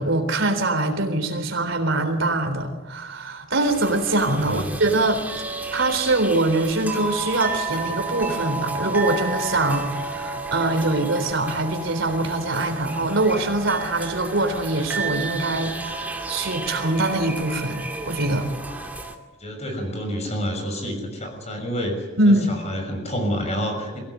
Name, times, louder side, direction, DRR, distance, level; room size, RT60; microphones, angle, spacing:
voice 1, 0.0-5.2 5.7-18.5 22.2-22.6, right 2 dB, 70° right, 6 dB, 3.8 m, -23 dB
sound 1, 3.7-19.2, right 3 dB, 10° right, 2.3 m, -32 dB
voice 2, 4.4-4.8 19.4-24.0, equal, 35° left, 4 dB, 6.3 m, -29 dB
23.0 x 17.0 x 9.5 m, 1.2 s
head